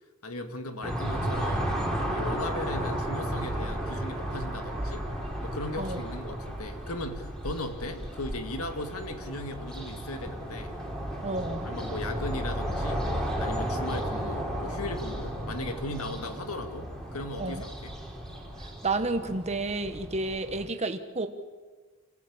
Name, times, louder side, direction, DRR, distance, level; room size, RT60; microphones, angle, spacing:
voice 1, 0.2-1.7 2.1-5.0 5.4-10.8 11.6-13.0 13.4-18.0, left 2 dB, 75° left, 7 dB, 2.2 m, -37 dB
sound 1, 0.8-20.7, right 1 dB, 5° left, 3.5 m, -34 dB
voice 2, 11.2-11.7 17.4-17.6 18.6-21.3, right 2 dB, 30° right, 7 dB, 1.4 m, -31 dB
27.5 x 14.5 x 8.8 m, 1.4 s
head